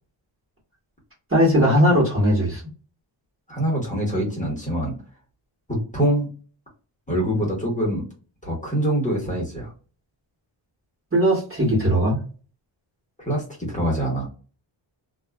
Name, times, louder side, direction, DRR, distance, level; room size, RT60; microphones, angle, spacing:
voice 1, 1.3-2.6 11.1-12.2, equal, 25° right, -3 dB, 1.3 m, -18 dB
voice 2, 3.5-4.9 5.7-6.3 7.1-8.0 8.4-9.7 13.2-14.3, right 1 dB, 15° left, -4 dB, 1.2 m, -24 dB
2.5 x 2.4 x 2.2 m, 0.36 s
wide cardioid pair, 110°, 48 cm